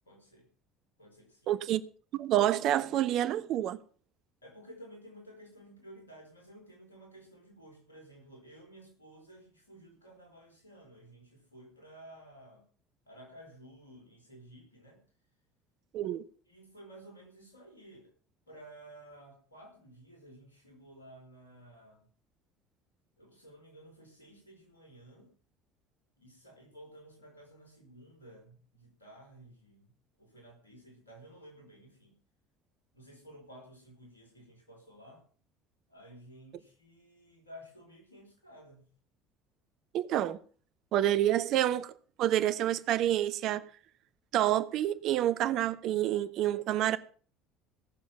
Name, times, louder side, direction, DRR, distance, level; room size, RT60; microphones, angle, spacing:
voice 1, 0.0-0.5 1.0-1.5 4.4-12.6 13.1-15.0 16.5-18.1 18.5-22.1 23.2-25.3 26.2-29.9 30.2-32.1 32.9-35.2 35.9-38.9, right 1 dB, 85° left, 4.6 m, -54 dB
voice 2, 1.5-1.8 2.1-3.8 15.9-16.2 39.9-40.4 40.9-41.9 42.2-43.6 44.3-47.0, right 12 dB, 55° right, 1.0 m, -28 dB
17.0 x 7.3 x 7.1 m
figure-of-eight pair, 60°, 0 cm